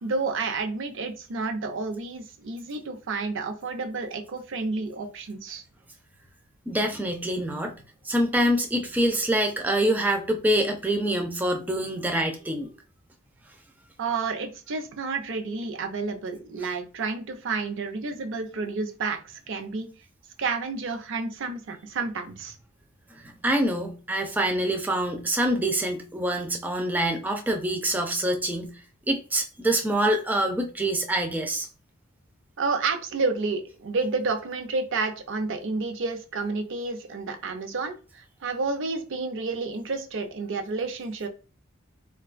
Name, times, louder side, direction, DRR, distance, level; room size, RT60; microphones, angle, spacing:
voice 1, 0.0-5.6 14.0-19.2 19.5-19.9 20.4-22.5 32.6-41.3, right 4 dB, 60° right, 0.5 m, -30 dB
voice 2, 6.7-7.7 8.0-12.7 23.1-28.8 29.1-31.7, right 1 dB, 10° right, 0.4 m, -25 dB
3.6 x 2.2 x 2.4 m
head